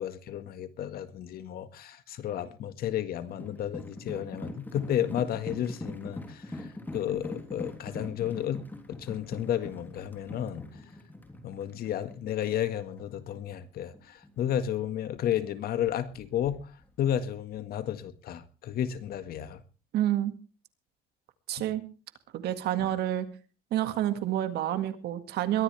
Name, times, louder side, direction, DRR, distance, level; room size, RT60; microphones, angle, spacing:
voice 1, 0.0-8.6 8.9-10.6 11.4-16.7 17.0-19.6 21.6-21.7 22.8-22.9, left 10 dB, 65° left, 1.7 m, -32 dB
sound 1, 3.3-13.3 13.6-13.7 13.9-15.2 15.6-16.8 17.1-17.4, left 1 dB, 10° left, 3.4 m, -43 dB
voice 2, 19.9-20.3 21.5-21.8 22.3-23.3 23.7-25.6, right 12 dB, 75° right, 2.0 m, -28 dB
22.0 x 14.0 x 3.4 m
cardioid pair, 110°, 17 cm